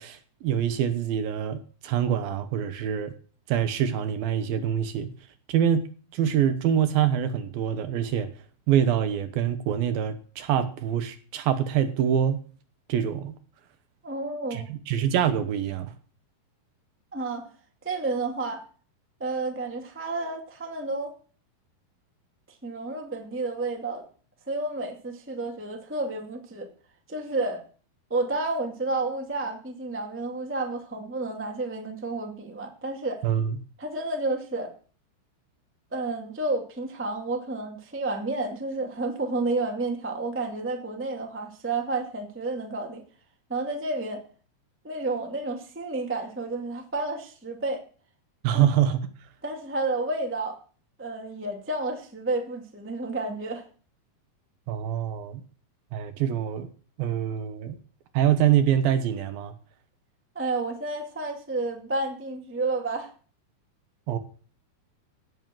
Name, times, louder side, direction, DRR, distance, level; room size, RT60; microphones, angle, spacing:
voice 1, 0.0-3.1 3.5-5.1 5.5-5.8 6.1-8.3 8.7-12.4 12.9-13.4 14.5-15.9 33.2-33.6 48.4-49.1 54.7-55.4 55.9-56.7 57.0-57.8 58.1-59.5 64.1-64.2, right 9 dB, 70° right, 2.6 m, -25 dB
voice 2, 14.0-14.7 17.1-17.5 17.8-18.6 19.2-21.1 22.6-24.0 24.5-26.7 27.1-27.6 28.1-33.2 33.8-34.7 35.9-43.0 43.5-44.2 44.8-47.8 48.5-48.6 49.4-50.6 51.0-53.6 60.3-63.1, right 2 dB, 10° right, 0.5 m, -30 dB
16.5 x 6.4 x 7.6 m
omnidirectional pair, 4.7 m